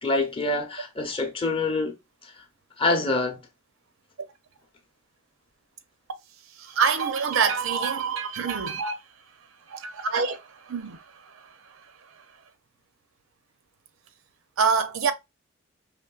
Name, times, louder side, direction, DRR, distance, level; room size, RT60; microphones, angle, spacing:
voice 1, 0.0-1.9 2.2-2.3 2.8-3.4, left 2 dB, 25° left, 0.7 m, -26 dB
voice 2, 6.5-9.0 9.7-12.2 14.6-15.1, right 5 dB, 70° right, 0.5 m, -27 dB
5.0 x 3.0 x 2.3 m
head